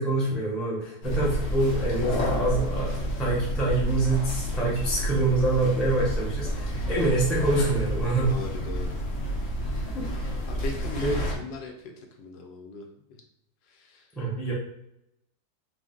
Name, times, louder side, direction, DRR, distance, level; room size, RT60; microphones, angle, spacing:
voice 1, 0.0-8.3 9.6-10.1 11.0-11.1 14.2-14.5, right 2 dB, ahead, -5 dB, 0.4 m, -26 dB
sound 1, 1.0-11.3, equal, 60° left, 0.9 m, -30 dB
voice 2, 8.3-9.0 10.5-13.2 13.7-14.1, left 4 dB, 80° left, 2 dB, 1.3 m, -39 dB
4.6 x 2.0 x 3.7 m, 0.80 s
omnidirectional pair, 2.0 m